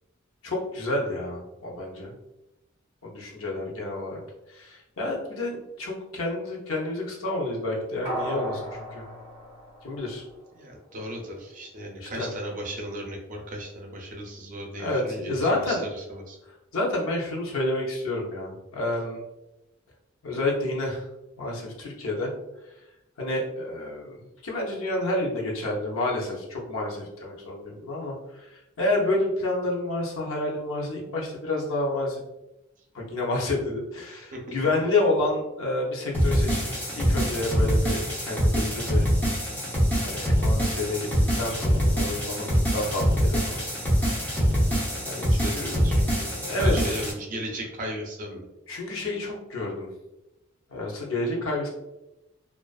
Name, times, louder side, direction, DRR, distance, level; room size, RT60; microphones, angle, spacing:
voice 1, 0.4-2.1 3.0-4.2 4.5-9.0 9.8-10.2 12.0-12.3 14.8-15.8 16.7-19.2 20.2-21.0 21.4-22.3 23.2-28.5 28.8-32.2 32.9-36.6 37.0-39.1 40.0-43.6 44.0-44.1 45.0-45.8 46.4-47.0 48.7-49.9 50.7-51.7, left 2 dB, 90° left, -2 dB, 0.6 m, -29 dB
sound 1, 8.0-10.6 11.0-11.1, equal, 20° right, 1.3 m, -36 dB
voice 2, 10.5-16.4 34.3-34.5 44.7-44.8 45.2-48.5, equal, 40° right, 0 dB, 0.5 m, -36 dB
sound 2, 36.1-47.1, equal, 10° left, 0.7 m, -24 dB
2.4 x 2.3 x 2.2 m, 0.96 s
head